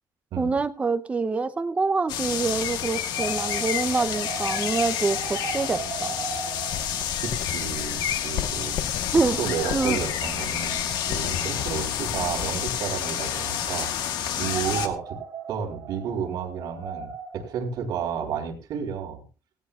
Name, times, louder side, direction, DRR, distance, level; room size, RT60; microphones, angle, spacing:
voice 1, 0.4-6.1 9.1-9.4 9.7-10.0, right 4 dB, 15° right, 11 dB, 0.7 m, -26 dB
sound 1, 2.1-14.9, left 9 dB, 75° left, 1.7 m, -29 dB
sound 2, 3.2-8.6 8.8-8.9 9.2-11.5 12.3-14.0 14.3-18.3, right 5 dB, 45° right, 3.8 m, -38 dB
sound 3, 6.7-12.7, left 10 dB, 60° left, 0.7 m, -35 dB
voice 2, 7.2-9.1 9.4-13.9 14.3-15.2 15.5-17.1 17.3-19.2, right 7 dB, 65° right, 1 dB, 4.1 m, -32 dB
17.5 x 17.0 x 2.4 m, 0.32 s
cardioid pair, 155°, 7 cm